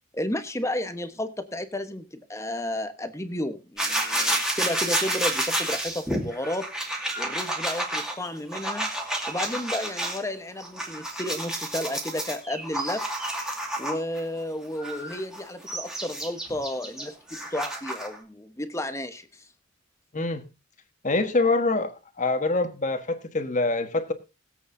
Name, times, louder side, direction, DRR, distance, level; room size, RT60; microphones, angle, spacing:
voice 1, 0.1-6.7 7.2-8.9 9.3-13.1 13.8-19.5, left 1 dB, 15° left, 9 dB, 1.1 m, -32 dB
sound 1, 3.8-10.2 10.6-14.2 14.8-18.2, right 1 dB, 5° right, 2.3 m, -30 dB
voice 2, 20.1-20.5 21.0-24.1, left 3 dB, 40° left, 9 dB, 1.4 m, -25 dB
20.5 x 8.2 x 2.7 m, 0.27 s
head